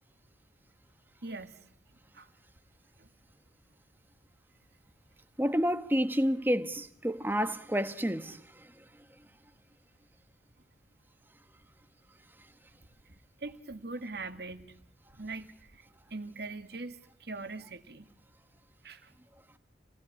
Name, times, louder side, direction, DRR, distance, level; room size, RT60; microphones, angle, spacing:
voice 1, 1.2-1.7 2.1-2.3 3.0-3.1 13.1-14.8 15.1-18.1 18.8-19.1, right 3 dB, 60° right, 2.0 m, -42 dB
voice 2, 5.4-8.4, equal, 10° right, 1.3 m, -29 dB
29.0 x 18.5 x 9.8 m
head